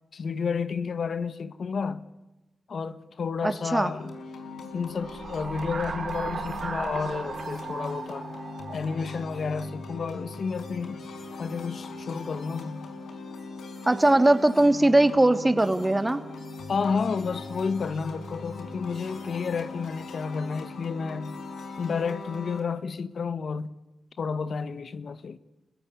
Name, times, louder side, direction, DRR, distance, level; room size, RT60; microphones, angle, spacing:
voice 1, 0.1-2.1 2.7-4.2 4.7-8.3 8.7-11.0 11.4-12.9 16.7-21.4 21.8-23.7 24.2-25.4, left 5 dB, 65° left, 1.3 m, -31 dB
voice 2, 3.4-3.9 13.9-16.2, right 1 dB, 20° right, 2.6 m, -20 dB
sound 1, 4.0-22.6, left 3 dB, 80° left, 4.8 m, -40 dB
sound 2, 4.9-9.6, right 4 dB, 60° right, 6.2 m, -36 dB
30.0 x 16.0 x 9.8 m
cardioid pair, 55°, 0 cm